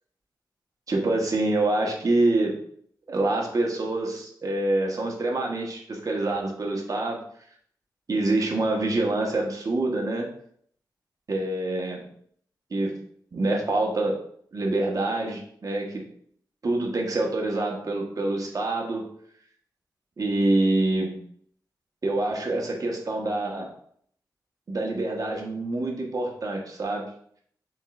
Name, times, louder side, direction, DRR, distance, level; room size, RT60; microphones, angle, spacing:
voice 1, 0.9-2.6 3.1-7.2 8.1-10.3 11.3-12.1 12.7-13.0 13.3-14.1 14.5-16.0 16.6-19.1 20.2-21.2 22.0-23.7 24.7-27.1, right 2 dB, 50° right, -1 dB, 1.1 m, -26 dB
5.2 x 3.8 x 2.4 m, 0.63 s
wide cardioid pair, 90°, 8 cm